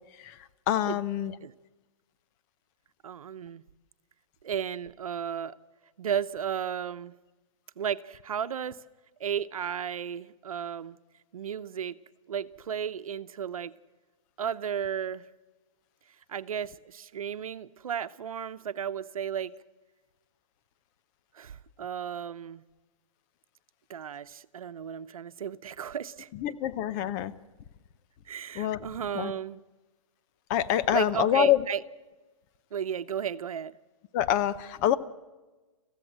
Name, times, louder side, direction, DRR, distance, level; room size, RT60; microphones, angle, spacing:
voice 1, 0.7-1.4 26.4-27.3 28.5-28.9 29.1-29.4 30.5-31.6 34.1-35.0, left 11 dB, 30° left, 14 dB, 0.8 m, -26 dB
voice 2, 3.0-3.6 4.4-5.5 6.0-7.1 7.8-8.8 9.2-11.0 11.3-12.0 12.3-13.7 14.4-15.2 16.3-19.5 21.3-22.6 23.9-26.3 28.3-29.6 30.9-31.8 32.7-33.8, right 8 dB, 85° right, 13 dB, 0.9 m, -34 dB
26.5 x 15.5 x 7.5 m, 1.2 s
hypercardioid pair, 150°, 18 cm